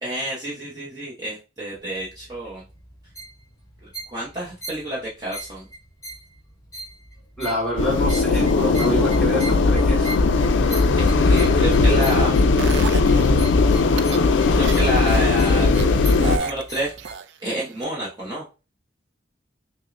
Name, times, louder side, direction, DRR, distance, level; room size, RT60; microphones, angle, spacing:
voice 1, 0.0-2.6 3.8-5.7 10.9-12.3 14.5-15.7 16.0-16.9 17.4-18.4, right 1 dB, 20° right, -7 dB, 0.8 m, -29 dB
sound 1, 1.7-17.1, right 1 dB, 20° left, 1.7 m, -40 dB
voice 2, 7.4-10.2, equal, 5° left, -3 dB, 1.5 m, -27 dB
sound 2, 7.8-16.4, left 3 dB, 75° left, 0.4 m, -18 dB
sound 3, 12.6-13.3 13.9-14.2 14.6-15.2 15.8-17.5 17.8-17.9, right 5 dB, 70° right, 0.3 m, -30 dB
6.1 x 2.1 x 2.5 m, 0.31 s
head